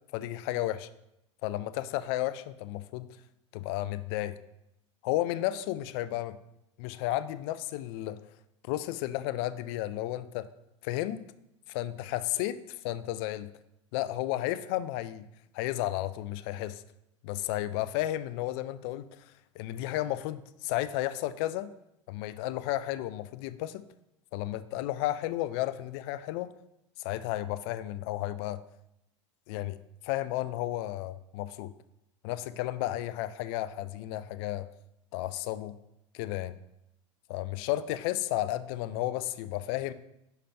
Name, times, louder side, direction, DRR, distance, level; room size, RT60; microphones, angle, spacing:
voice 1, 0.1-0.9 1.4-3.1 3.5-4.4 5.0-6.4 6.8-8.2 8.7-10.5 10.8-11.2 11.7-13.5 13.9-15.3 15.5-16.8 17.2-19.3 19.6-21.7 22.1-23.9 24.3-26.5 27.0-28.6 29.5-29.8 30.0-31.7 32.2-34.7 35.1-35.8 36.1-36.6 37.3-39.9, left 15 dB, 55° left, 14 dB, 0.4 m, -33 dB
5.7 x 4.9 x 4.2 m, 0.83 s
figure-of-eight pair, 80°, 16 cm